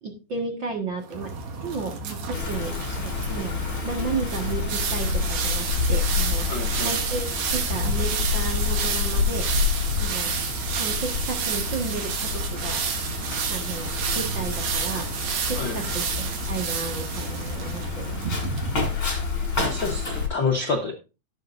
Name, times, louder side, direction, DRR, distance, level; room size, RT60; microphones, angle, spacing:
voice 1, 0.0-1.3 1.6-6.4 6.8-9.5 10.0-10.3 10.8-13.1 13.5-18.3, right 4 dB, 45° right, 1.6 m, -33 dB
sound 1, 1.1-18.9, right 5 dB, 70° right, 3.5 m, -30 dB
Wind, 2.3-20.3, left 5 dB, 25° left, 4.5 m, -29 dB
voice 2, 6.5-7.0 15.6-15.8 19.5-20.9, left 4 dB, 80° left, 1.0 m, -28 dB
18.0 x 7.7 x 2.6 m
omnidirectional pair, 4.5 m